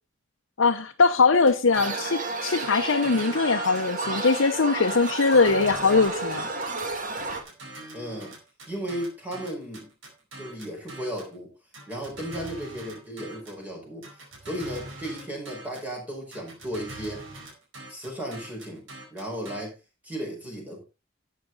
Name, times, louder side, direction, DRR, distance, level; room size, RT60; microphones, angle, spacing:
voice 1, 0.6-6.5, left 4 dB, 80° left, 0.8 m, -21 dB
sound 1, 1.5-2.2 2.6-4.5 4.9-6.8 7.2-11.3 11.7-13.6 14.0-15.9 16.3-19.6, right 2 dB, 80° right, 4.6 m, -43 dB
sound 2, 1.7-7.4, right 3 dB, 45° right, 1.9 m, -31 dB
voice 2, 7.9-8.3 8.7-9.9 10.4-11.5 11.9-14.1 14.4-17.2 17.9-18.8 19.1-19.7 20.0-20.8, equal, 10° right, 5.0 m, -35 dB
12.0 x 8.4 x 4.0 m
head